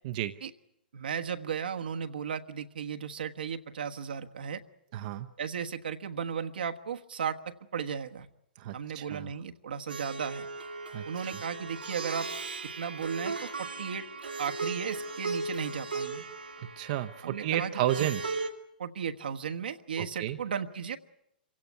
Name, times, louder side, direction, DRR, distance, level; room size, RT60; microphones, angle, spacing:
voice 1, 0.0-0.4 4.9-5.3 8.6-9.3 10.9-11.4 16.8-18.2 20.0-20.4, right 12 dB, 50° right, 8 dB, 0.8 m, -32 dB
voice 2, 0.9-4.6 5.4-8.3 8.7-10.5 11.0-12.3 12.8-14.0 14.4-16.2 17.2-17.7 18.0-18.1 18.8-21.0, right 7 dB, 75° right, 5 dB, 1.3 m, -35 dB
Plucked string instrument, 9.9-18.5, right 3 dB, 90° right, 2.4 m, -37 dB
26.5 x 16.5 x 9.4 m, 0.81 s
figure-of-eight pair, 110°, 5 cm